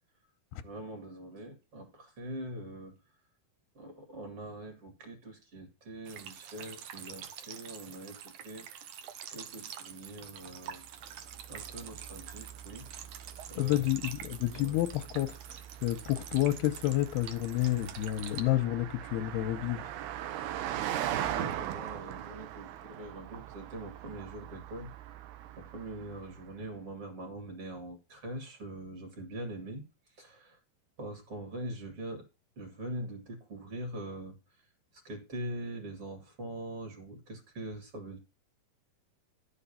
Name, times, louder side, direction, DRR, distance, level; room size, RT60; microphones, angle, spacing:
voice 1, 0.6-3.0 3.7-9.0 9.3-10.8 11.5-12.9 13.5-13.9 14.5-14.8 21.1-25.2 25.6-30.6 31.0-32.3 32.6-34.4 35.0-38.2, right 1 dB, 40° right, 2.8 m, -43 dB
sound 1, 6.1-18.4, right 9 dB, 65° right, 2.2 m, -46 dB
Car passing by, 10.8-26.6, right 11 dB, 85° right, 2.9 m, -41 dB
voice 2, 13.5-19.9, left 15 dB, 90° left, 2.8 m, -30 dB
11.5 x 7.1 x 5.6 m
omnidirectional pair, 4.5 m